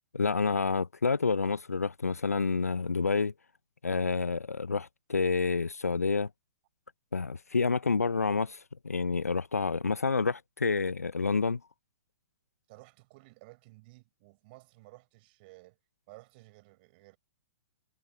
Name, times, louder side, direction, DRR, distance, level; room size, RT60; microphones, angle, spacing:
voice 1, 0.1-3.3 3.8-6.3 7.1-11.6, left 4 dB, 85° left, 0.6 m, -29 dB
voice 2, 12.7-15.8 16.1-17.2, right 24 dB, 40° right, 4.7 m, -55 dB
figure-of-eight pair, 115°, 8 cm